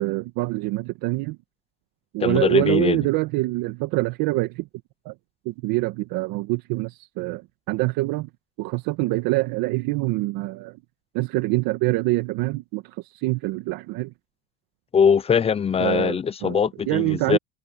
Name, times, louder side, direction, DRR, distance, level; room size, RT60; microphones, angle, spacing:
voice 1, 0.0-1.4 2.1-4.7 5.0-5.1 5.4-7.4 7.7-8.3 8.6-10.8 11.1-14.1 15.8-16.6 16.9-17.4, right 20 dB, 70° right, 1.5 m, -25 dB
voice 2, 2.2-3.1 14.9-17.4, left 7 dB, 15° left, 0.4 m, -21 dB
supercardioid pair, 110°, 37 cm